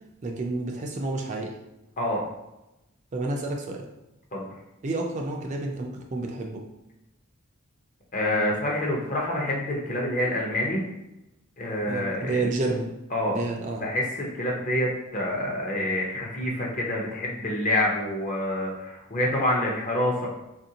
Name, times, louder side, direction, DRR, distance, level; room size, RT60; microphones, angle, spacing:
voice 1, 0.2-1.5 3.1-3.8 4.8-6.6 11.9-12.9 13.3-13.8, right 2 dB, 35° right, 1 dB, 0.4 m, -30 dB
voice 2, 8.1-10.8 11.6-12.4 13.1-13.4 13.8-20.3, left 1 dB, 40° left, -2 dB, 0.7 m, -27 dB
3.5 x 2.5 x 2.8 m, 0.94 s
head